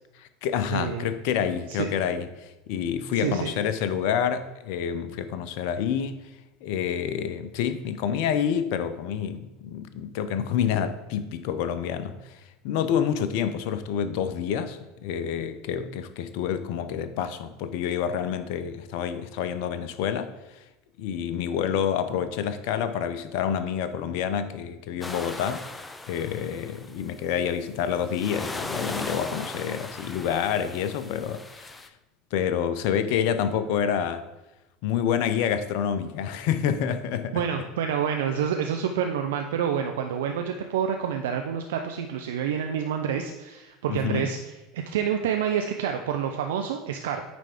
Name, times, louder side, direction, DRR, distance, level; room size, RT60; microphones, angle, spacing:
voice 1, 0.1-6.2 6.6-20.6 21.0-25.7 26.1-31.7 32.3-34.2 34.8-37.4 43.9-44.3, left 8 dB, 60° left, 0.5 m, -28 dB
voice 2, 0.7-1.1 1.7-1.9 3.2-3.5 37.3-47.2, right 8 dB, 75° right, 0.5 m, -28 dB
sound 1, 25.0-27.2 27.8-31.9, left 2 dB, 15° left, 0.6 m, -38 dB
9.1 x 3.4 x 5.0 m
hypercardioid pair, 75°, 0 cm